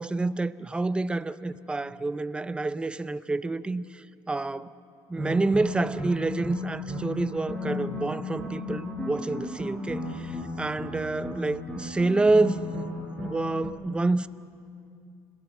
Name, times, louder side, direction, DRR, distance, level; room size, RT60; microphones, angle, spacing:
voice 1, 0.0-4.7 5.1-12.7 13.2-14.3, right 2 dB, 10° right, 0.6 m, -28 dB
sound 1, 5.2-13.7, left 1 dB, 10° left, 4.4 m, -35 dB
26.5 x 17.0 x 7.2 m
cardioid pair, 125°, 9 cm